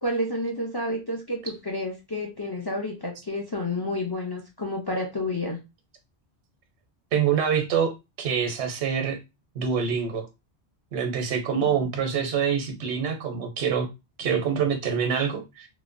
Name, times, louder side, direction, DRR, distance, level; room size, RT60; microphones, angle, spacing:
voice 1, 0.0-5.6, left 1 dB, 40° left, 0 dB, 0.3 m, -30 dB
voice 2, 7.1-9.2 9.6-10.3 10.9-13.9 14.2-15.7, right 7 dB, 85° right, 5 dB, 0.9 m, -25 dB
3.1 x 2.1 x 2.5 m, 0.24 s
omnidirectional pair, 1.1 m